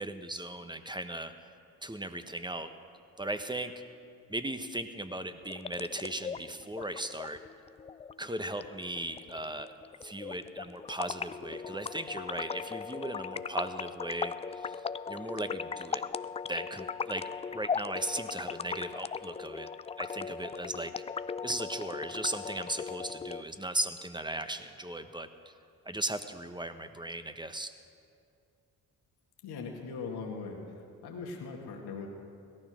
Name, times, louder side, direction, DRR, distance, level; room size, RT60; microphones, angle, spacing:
voice 1, 0.0-1.3 1.8-2.7 3.2-3.7 4.3-7.4 8.2-9.7 10.0-16.0 16.5-19.7 20.0-20.9 21.4-25.5 25.8-27.7, right 1 dB, 10° right, 9 dB, 1.2 m, -37 dB
sound 1, 5.4-23.4, left 6 dB, 15° left, 0.3 m, -38 dB
voice 2, 29.4-30.6 31.0-32.1, left 4 dB, 70° left, 0 dB, 2.1 m, -40 dB
17.5 x 13.0 x 6.3 m, 2.5 s
hypercardioid pair, 45°, 40 cm